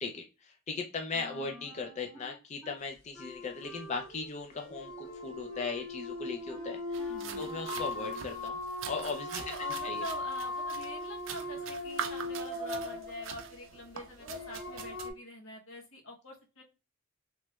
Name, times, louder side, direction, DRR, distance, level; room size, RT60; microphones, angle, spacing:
voice 1, 0.0-8.6 8.9-10.0, left 4 dB, 35° left, 3 dB, 0.4 m, -38 dB
Wind instrument woodwind instrument, 1.1-2.8 3.1-8.5, equal, 5° left, 1.4 m, -51 dB
sound 1, 4.5-15.1, left 2 dB, 55° left, 1.1 m, -39 dB
sound 2, 6.9-15.1, right 7 dB, 70° right, 0.4 m, -44 dB
voice 2, 7.1-7.5 9.3-16.6, equal, 90° left, 2 dB, 0.9 m, -46 dB
3.1 x 3.0 x 2.2 m, 0.29 s
head